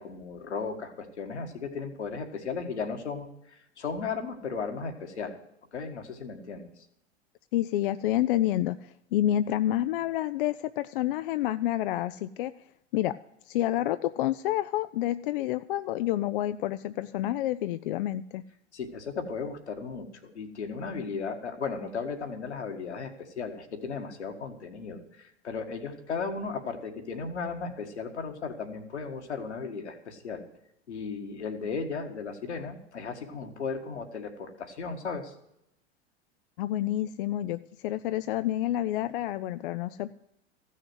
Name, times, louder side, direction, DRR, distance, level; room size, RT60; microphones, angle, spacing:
voice 1, 0.0-5.4 5.7-6.7 18.7-30.4 30.9-35.3, left 5 dB, 75° left, 4 dB, 1.8 m, -36 dB
voice 2, 7.5-12.5 12.9-13.2 13.5-18.4 36.6-40.1, left 13 dB, 50° left, 12 dB, 0.5 m, -29 dB
15.0 x 6.4 x 7.8 m, 0.82 s
figure-of-eight pair, 90°, 34 cm